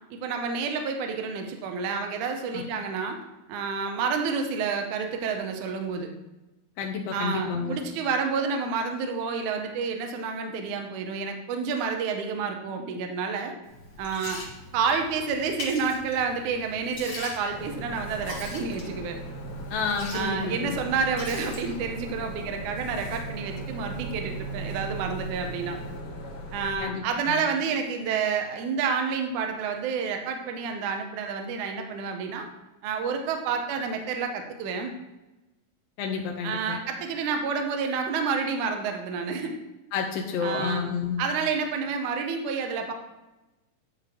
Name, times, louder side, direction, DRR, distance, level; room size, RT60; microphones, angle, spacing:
voice 1, 0.1-3.2 3.5-6.1 7.1-13.5 14.0-14.4 14.7-19.2 20.1-25.8 26.5-32.5 32.8-34.9 36.4-39.5 40.4-40.8 41.2-42.9, right 5 dB, 75° right, 4 dB, 2.0 m, -29 dB
voice 2, 6.8-7.8 19.7-20.8 26.8-27.4 36.0-36.8 39.9-41.2, left 6 dB, 85° left, 1 dB, 1.4 m, -30 dB
Liquid, 13.6-26.0, left 2 dB, 40° left, 1.1 m, -43 dB
sound 1, 17.5-26.8, right 2 dB, 60° left, 1.7 m, -37 dB
10.5 x 5.1 x 3.6 m, 1.0 s
omnidirectional pair, 4.1 m